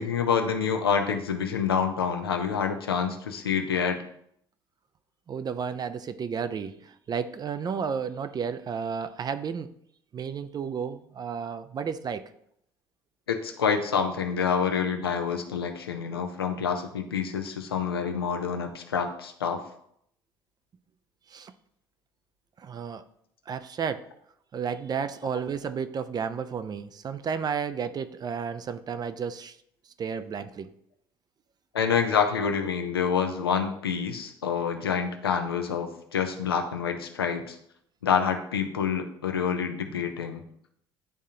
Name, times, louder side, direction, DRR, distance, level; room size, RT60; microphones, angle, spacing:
voice 1, 0.0-4.0 13.3-19.6 31.7-37.6 38.0-40.4, left 6 dB, 90° left, 5 dB, 0.7 m, -27 dB
voice 2, 5.3-9.7 10.1-12.2 21.3-21.5 22.6-23.0 23.5-24.1 24.5-29.6 30.0-30.7, right 6 dB, 35° right, 11 dB, 0.5 m, -32 dB
10.0 x 3.6 x 2.8 m, 0.70 s
hypercardioid pair, 65°, 12 cm